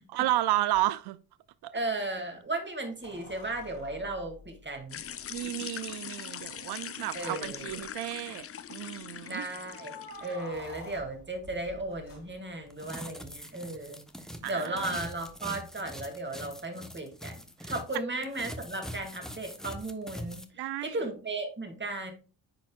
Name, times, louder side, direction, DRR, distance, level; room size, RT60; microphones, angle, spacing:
voice 1, 0.1-1.2 1.6-1.7 5.3-9.5 14.4-14.8 17.6-17.7 20.6-21.0, right 15 dB, 65° right, 0.5 m, -32 dB
sound 1, 0.7-0.8 3.0-5.4 6.4-6.5 6.8-6.9 7.4-7.9 9.6-12.8 15.3-15.4, left 2 dB, 90° left, 3.7 m, -48 dB
voice 2, 1.7-5.0 7.1-7.8 9.3-14.0 14.4-22.1, right 2 dB, 25° right, 2.4 m, -36 dB
sound 2, 4.9-10.5, left 9 dB, 35° left, 0.5 m, -42 dB
sound 3, 12.7-18.0 18.2-20.5, equal, ahead, 1.1 m, -43 dB
10.5 x 4.4 x 2.4 m
supercardioid pair, 55°, 42 cm